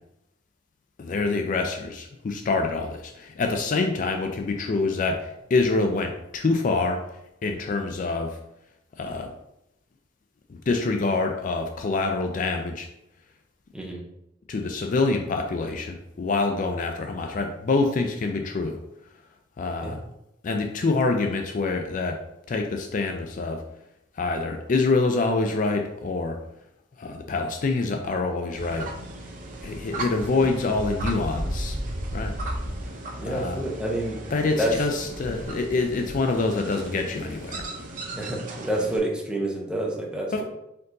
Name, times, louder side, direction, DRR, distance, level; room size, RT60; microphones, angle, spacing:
voice 1, 1.0-7.0 7.4-8.4 9.0-9.3 10.5-12.9 14.5-18.8 19.6-20.0 20.4-22.2 22.5-23.6 24.2-26.4 27.0-28.9 29.6-31.8 32.1-32.3 33.3-33.6 34.3-37.6 40.3-40.4, left 3 dB, 45° left, 4 dB, 0.4 m, -26 dB
sound 1, 28.5-39.0, right 1 dB, 45° right, 0.6 m, -35 dB
voice 2, 33.2-34.2 34.6-34.8 38.2-40.4, right 1 dB, 5° right, -2 dB, 0.7 m, -28 dB
4.5 x 3.8 x 2.6 m, 0.84 s
head